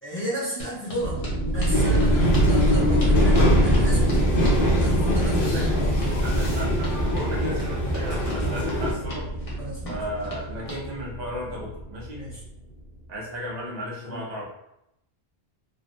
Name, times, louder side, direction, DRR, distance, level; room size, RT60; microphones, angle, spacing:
voice 1, 0.0-6.2 9.6-10.0 12.1-12.4 14.0-14.2, equal, 15° left, -9 dB, 0.9 m, -33 dB
sound 1, 0.6-10.8, equal, 35° left, 0.9 m, -38 dB
sound 2, 1.0-12.4, right 1 dB, 90° left, 1.2 m, -24 dB
sound 3, 1.7-8.9, left 1 dB, 60° left, 1.0 m, -26 dB
voice 2, 5.4-5.9 6.2-9.3 9.9-12.2 13.1-14.5, equal, 45° right, -3 dB, 0.9 m, -35 dB
3.5 x 2.2 x 2.6 m, 0.82 s
omnidirectional pair, 1.0 m